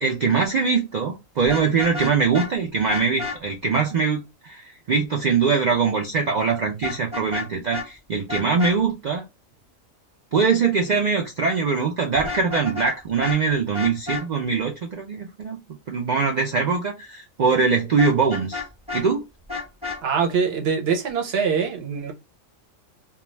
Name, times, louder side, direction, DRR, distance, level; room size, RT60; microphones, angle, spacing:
voice 1, 0.0-9.2 10.3-15.6 15.9-18.6 18.9-19.2, right 5 dB, 80° right, 0.4 m, -22 dB
Vehicle horn car horn honking, 1.4-2.5 2.9-3.4 6.8-7.5 7.7-7.9 8.3-8.7 12.1-12.9 13.2-13.4 13.7-14.2 18.0-19.0 19.5-20.0, left 4 dB, 5° right, 0.7 m, -31 dB
voice 2, 20.0-22.1, right 6 dB, 60° right, 0.8 m, -23 dB
2.3 x 2.3 x 3.0 m
omnidirectional pair, 1.3 m